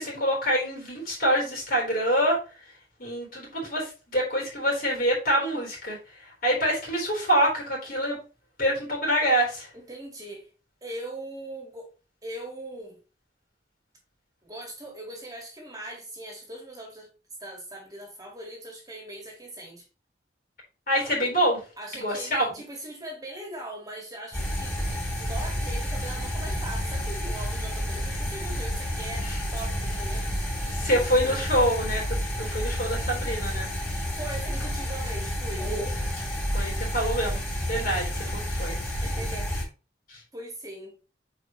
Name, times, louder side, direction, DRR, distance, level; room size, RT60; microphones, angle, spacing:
voice 1, 0.0-2.4 3.0-8.2 8.6-9.7 20.9-21.6 21.9-22.4 29.2-29.4 30.7-33.7 36.5-37.4 37.7-38.8 40.1-40.2, equal, 55° left, 3.8 m, -26 dB
voice 2, 9.7-10.5 10.8-11.9 12.2-13.0 14.4-17.1 17.4-19.9 21.8-24.8 25.2-30.3 30.9-31.5 34.1-35.8 39.0-39.5 40.3-41.0, right 1 dB, 20° right, 1.8 m, -40 dB
sound 1, 24.3-39.6, equal, 10° left, 3.7 m, -30 dB
7.6 x 4.9 x 3.0 m
head